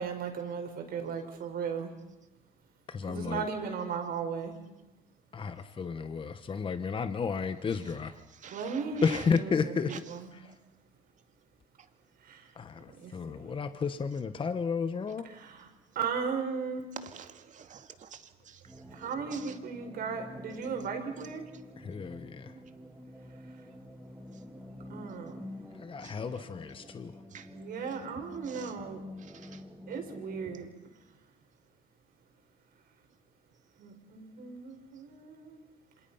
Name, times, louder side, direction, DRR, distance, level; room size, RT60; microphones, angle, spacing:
voice 1, 0.0-1.9 3.1-4.6 8.5-9.0 9.3-10.3 12.2-12.5 12.9-13.6 15.2-15.7 16.0-16.8 18.9-21.5 24.9-25.4 27.5-29.0 29.9-30.7 33.8-35.6, right 6 dB, 65° right, 4 dB, 5.4 m, -36 dB
voice 2, 2.9-3.5 5.3-8.1 9.0-9.9 12.6-15.2 21.8-22.5 25.7-27.1 27.8-27.9, left 5 dB, 30° left, 10 dB, 1.2 m, -32 dB
voice 3, 8.3-9.3 9.9-10.2 10.4-10.6 11.8-11.9 15.1-15.2 17.0-19.6 26.0-26.5 27.3-27.5 28.4-28.8 29.2-29.6, right 8 dB, 45° right, 8 dB, 2.2 m, -48 dB
sound 1, 18.6-30.6, left 1 dB, 5° right, 3.0 m, -48 dB
28.5 x 26.5 x 5.7 m, 0.99 s
cardioid pair, 110°, 17 cm